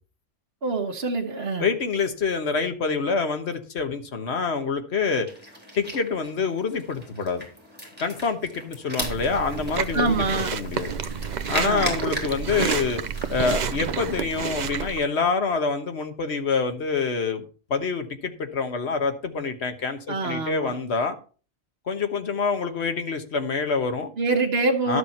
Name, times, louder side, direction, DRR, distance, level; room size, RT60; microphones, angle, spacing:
voice 1, 0.6-1.7 9.9-10.5 11.6-11.9 20.1-20.8 24.2-25.0, right 3 dB, 65° right, 1.5 m, -25 dB
voice 2, 1.6-5.3 5.8-7.5 8.0-10.9 11.5-13.0 13.3-17.4 17.7-21.2 21.9-24.1 24.9-25.0, left 5 dB, 80° left, 1.5 m, -26 dB
sound 1, 5.3-14.4, equal, 10° right, 3.6 m, -38 dB
Chewing mastication, 9.0-15.0, right 7 dB, 50° right, 0.7 m, -29 dB
12.0 x 6.8 x 4.3 m
omnidirectional pair, 1.1 m